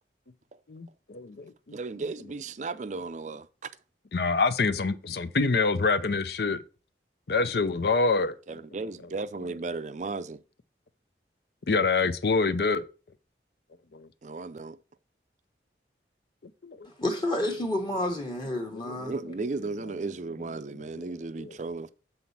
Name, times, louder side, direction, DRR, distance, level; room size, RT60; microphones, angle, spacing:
voice 1, 0.7-1.8 4.1-6.6 7.3-8.4 11.7-12.9 13.9-14.1 16.6-16.9 18.7-19.1 21.4-21.5, left 4 dB, 60° left, 0.5 m, -26 dB
voice 2, 1.7-3.7 8.5-10.4 14.2-14.8 19.1-21.9, right 3 dB, 40° right, 0.5 m, -35 dB
voice 3, 17.0-19.1, left 1 dB, 25° left, 1.2 m, -29 dB
7.8 x 4.1 x 5.5 m
head